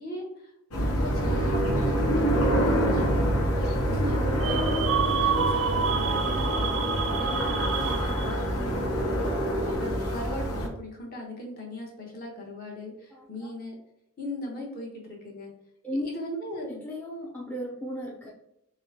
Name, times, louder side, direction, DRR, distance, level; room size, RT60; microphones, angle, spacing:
voice 1, 0.0-1.6 2.4-3.3 3.9-9.3 9.8-13.7 14.2-15.5 16.0-16.8, left 1 dB, 40° left, -1 dB, 1.1 m, -38 dB
sound 1, 0.7-10.7, equal, 90° left, 0.9 m, -26 dB
sound 2, 4.4-8.6, right 7 dB, 65° right, 0.4 m, -28 dB
voice 2, 16.6-18.3, equal, 10° left, -4 dB, 0.5 m, -35 dB
6.4 x 2.2 x 2.8 m, 0.82 s
head